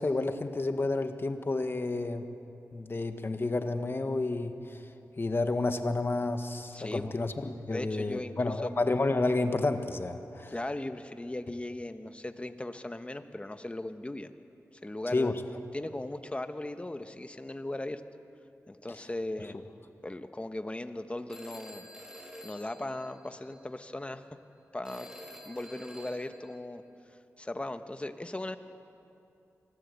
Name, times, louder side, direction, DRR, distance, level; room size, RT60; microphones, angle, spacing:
voice 1, 0.0-2.3 2.7-4.8 5.2-10.5 15.1-15.4, left 2 dB, 40° left, 8 dB, 1.5 m, -30 dB
voice 2, 6.7-7.1 7.7-8.7 10.5-14.3 14.8-15.3 15.7-18.0 18.7-19.6 20.0-21.9 22.4-24.2 24.7-25.1 25.4-26.8 27.1-28.6, left 1 dB, 20° left, 9 dB, 1.2 m, -38 dB
Telephone, 21.3-23.6 24.8-26.6, equal, 10° right, 3.5 m, -49 dB
24.5 x 18.5 x 8.3 m, 2.7 s
wide cardioid pair, 70°, 6 cm